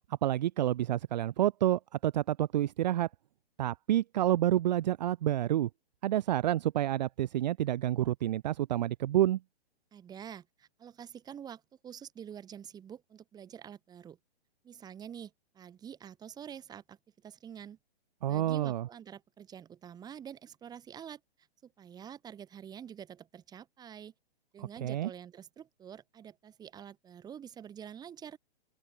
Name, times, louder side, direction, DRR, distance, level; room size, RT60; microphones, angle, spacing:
voice 1, 0.2-3.1 3.6-5.7 6.0-9.4 18.2-18.9 24.6-25.1, right 13 dB, 40° right, 1.0 m, -29 dB
voice 2, 9.9-14.2 14.6-17.0 17.2-17.8 18.3-21.2 21.6-24.1 24.5-28.4, right 8 dB, 10° right, 4.7 m, -47 dB
open air
hypercardioid pair, 155°, 32 cm